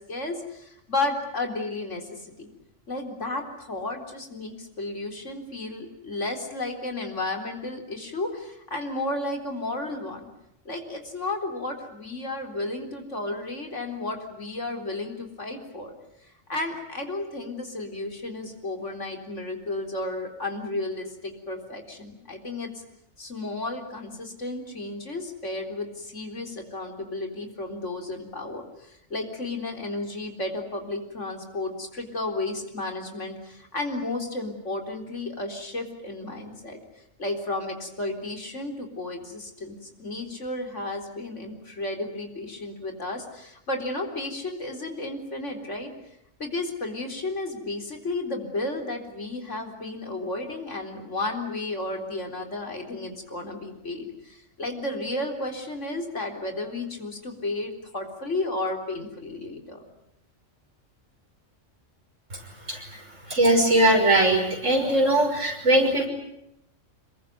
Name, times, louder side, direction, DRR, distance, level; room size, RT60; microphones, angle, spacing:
voice 1, 0.1-2.5 2.9-10.3 10.7-15.9 16.5-22.8 23.2-36.8 37.2-45.9 46.4-59.8, left 2 dB, 70° left, 4 dB, 4.3 m, -33 dB
voice 2, 62.7-63.0 63.3-66.1, right 1 dB, 75° right, 3 dB, 6.3 m, -20 dB
27.0 x 22.0 x 9.4 m, 0.80 s
omnidirectional pair, 1.3 m